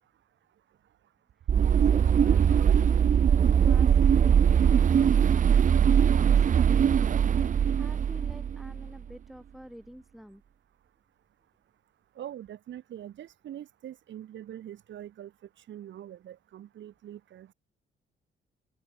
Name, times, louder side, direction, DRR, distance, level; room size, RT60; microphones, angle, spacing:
sound 1, 1.5-8.9, right 8 dB, 40° right, 0.7 m, -21 dB
voice 1, 1.8-10.4, equal, ahead, 5.0 m, -48 dB
voice 2, 12.2-15.3 15.6-17.5, right 11 dB, 70° right, 2.4 m, -43 dB
open air
cardioid pair, 90°, 20 cm